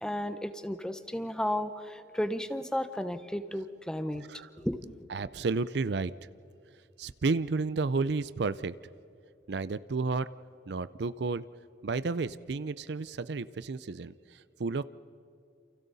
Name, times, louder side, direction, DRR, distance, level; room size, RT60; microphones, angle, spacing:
voice 1, 0.0-4.2 4.6-4.9, equal, 5° left, 10 dB, 0.9 m, -33 dB
voice 2, 5.1-6.1 7.0-8.7 9.5-10.3 10.7-11.5 11.8-14.8, right 4 dB, 65° right, 16 dB, 0.5 m, -31 dB
29.0 x 28.5 x 4.1 m, 2.5 s
head